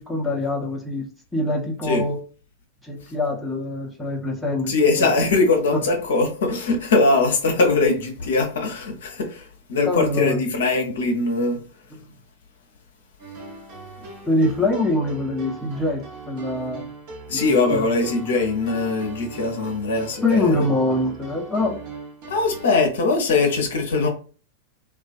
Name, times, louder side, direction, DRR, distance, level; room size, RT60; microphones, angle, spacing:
voice 1, 0.0-2.2 2.8-5.2 5.7-5.8 9.8-10.4 14.2-16.8 17.3-17.9 20.2-21.8, left 2 dB, 5° left, 0.6 m, -24 dB
voice 2, 4.7-11.6 17.3-20.6 22.3-24.1, left 3 dB, 60° left, 0.6 m, -21 dB
sound 1, 13.2-22.8, right 2 dB, 45° right, 0.8 m, -39 dB
2.3 x 2.2 x 2.5 m
figure-of-eight pair, 90°, 0 cm